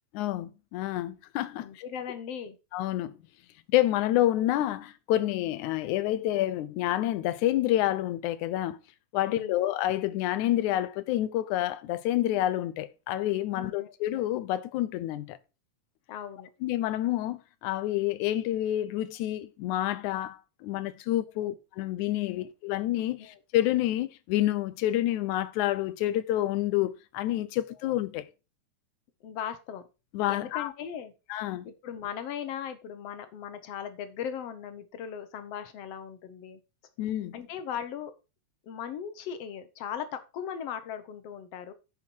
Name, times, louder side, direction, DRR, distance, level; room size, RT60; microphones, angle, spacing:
voice 1, 0.1-1.7 2.7-3.2 3.7-8.8 9.1-15.4 16.6-28.3 30.1-30.7 31.3-31.7 37.0-37.4, left 14 dB, 90° left, 2.2 m, -28 dB
voice 2, 1.6-2.6 9.2-9.6 13.5-13.9 16.1-16.5 21.4-21.6 22.4-22.5 23.2-23.4 29.2-29.8 30.3-31.1 31.6-36.6 37.3-38.1 38.6-41.7, left 8 dB, 65° left, 1.9 m, -38 dB
9.6 x 5.8 x 4.5 m
omnidirectional pair, 3.3 m